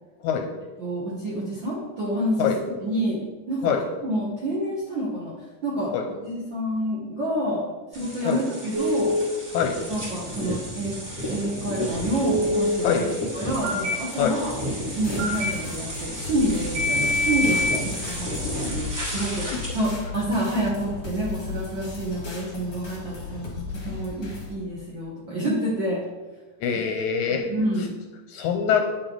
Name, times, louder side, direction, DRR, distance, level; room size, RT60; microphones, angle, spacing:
voice 1, 0.8-3.2 3.5-3.6 4.0-5.3 5.6-7.7 7.9-9.1 9.9-11.0 11.3-13.0 13.3-14.5 14.9-19.5 19.7-26.0 27.5-27.9, right 1 dB, 55° right, -6 dB, 1.4 m, -28 dB
sound 1, 7.9-20.0, equal, 20° right, 2.8 m, -33 dB
Telephone, 8.7-9.2 12.2-12.7 13.6-13.9 15.2-15.5 16.8-17.8, left 1 dB, 80° right, 3.1 m, -24 dB
sound 2, 14.9-24.5, left 4 dB, 45° left, 1.2 m, -36 dB
voice 2, 26.6-27.5 28.3-28.8, left 7 dB, 80° left, 4 dB, 1.9 m, -24 dB
8.6 x 6.2 x 3.9 m, 1.2 s
omnidirectional pair, 3.8 m